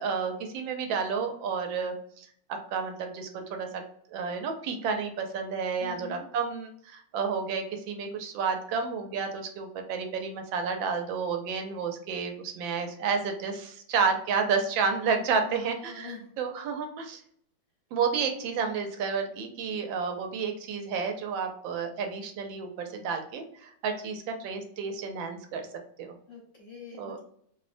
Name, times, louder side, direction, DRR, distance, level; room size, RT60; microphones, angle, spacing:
voice 1, 0.0-3.8 4.1-17.2 17.9-25.7 26.0-26.1 27.0-27.2, right 5 dB, 90° right, 4 dB, 1.3 m, -31 dB
voice 2, 5.8-6.2 15.4-16.3 26.3-27.2, left 5 dB, 50° left, -4 dB, 1.1 m, -44 dB
3.1 x 2.1 x 2.4 m, 0.64 s
omnidirectional pair, 2.0 m